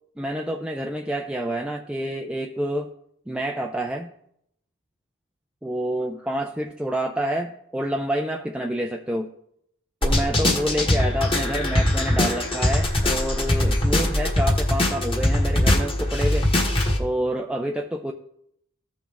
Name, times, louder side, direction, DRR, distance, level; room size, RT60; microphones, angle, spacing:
voice 1, 0.2-2.9 3.3-4.1 5.6-9.3 10.0-16.5 17.0-18.1, right 1 dB, 5° right, 2 dB, 0.4 m, -28 dB
sound 1, 10.0-17.0, left 1 dB, 25° left, 1.4 m, -22 dB
15.0 x 5.1 x 3.5 m, 0.74 s
head